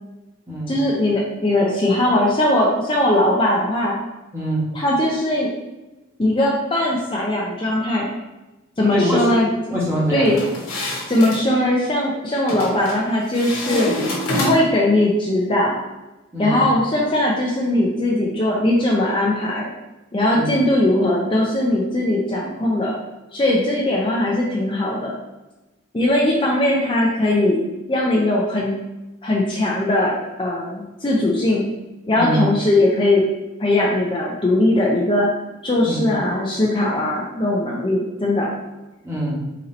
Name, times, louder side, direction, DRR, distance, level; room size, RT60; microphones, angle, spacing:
voice 1, 0.7-4.0 4.7-5.5 6.2-8.1 8.8-9.5 10.1-10.4 11.1-13.9 14.3-15.8 16.4-19.7 20.1-22.9 23.3-25.1 25.9-27.6 27.9-28.7 29.2-31.6 32.1-33.2 33.6-35.3 35.6-38.5, left 1 dB, 25° left, -3 dB, 0.5 m, -19 dB
voice 2, 4.3-4.7 8.9-9.4 9.7-10.3 16.3-16.7 20.3-20.5 32.1-32.4 35.8-36.0 39.0-39.4, right 1 dB, 10° right, -6 dB, 1.0 m, -23 dB
sound 1, 10.3-11.4 12.5-13.0 13.3-14.8, left 1 dB, 85° left, 1.1 m, -26 dB
3.9 x 2.7 x 4.2 m, 1.1 s
head